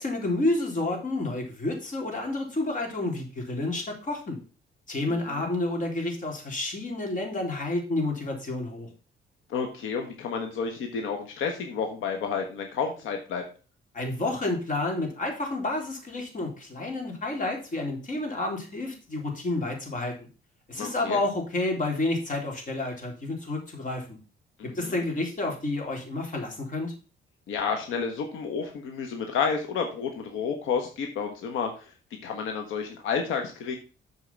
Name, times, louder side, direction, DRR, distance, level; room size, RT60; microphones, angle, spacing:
voice 1, 0.0-4.4 4.9-8.9 13.9-20.3 20.7-24.2 24.6-26.9, left 2 dB, 40° left, 1 dB, 3.6 m, -30 dB
voice 2, 5.1-5.5 9.5-13.4 20.7-21.2 24.6-25.0 27.5-31.9 32.2-33.8, left 6 dB, 90° left, 4 dB, 1.4 m, -31 dB
7.5 x 4.9 x 5.8 m, 0.35 s
cardioid pair, 90°, 20 cm